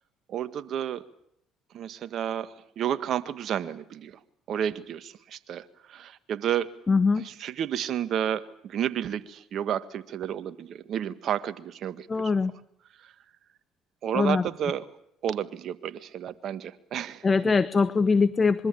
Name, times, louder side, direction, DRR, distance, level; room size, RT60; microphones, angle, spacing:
voice 1, 0.3-1.0 1.7-4.2 4.5-6.7 7.2-12.3 14.0-14.9 15.2-17.3, right 9 dB, 60° right, 12 dB, 1.7 m, -31 dB
voice 2, 6.9-7.3 12.1-12.5 14.1-14.4 17.2-18.7, left 4 dB, 30° left, 15 dB, 1.1 m, -22 dB
25.5 x 23.5 x 8.6 m, 0.72 s
hypercardioid pair, 60°, 0 cm